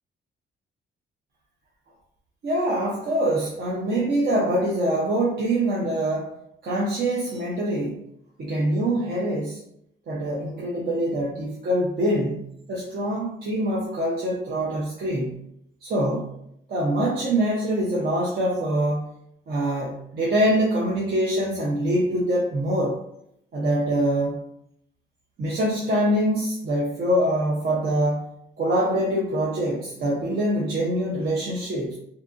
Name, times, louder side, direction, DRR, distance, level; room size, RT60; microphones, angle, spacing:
voice 1, 2.4-6.3 6.6-8.0 8.4-9.6 10.1-12.4 12.7-15.4 15.8-16.3 16.7-19.1 19.5-23.0 23.5-24.4 25.4-28.3 28.6-32.0, right 1 dB, 50° right, -4 dB, 0.6 m, -24 dB
2.7 x 2.3 x 2.4 m, 0.76 s
cardioid pair, 90°, 20 cm